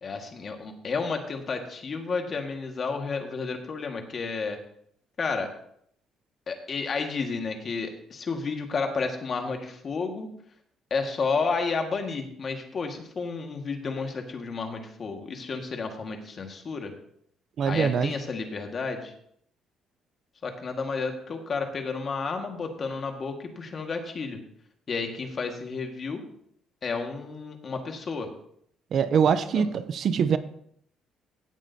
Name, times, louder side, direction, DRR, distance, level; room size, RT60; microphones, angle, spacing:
voice 1, 0.0-4.6 5.2-5.5 6.5-10.3 10.9-16.9 17.7-19.1 20.4-24.4 24.9-26.2 26.8-28.3 29.5-29.7, left 4 dB, 40° left, 1.8 m, -31 dB
voice 2, 17.6-18.1 28.9-30.4, right 7 dB, 55° right, 0.6 m, -23 dB
16.5 x 8.4 x 2.8 m
cardioid pair, 115°, 0 cm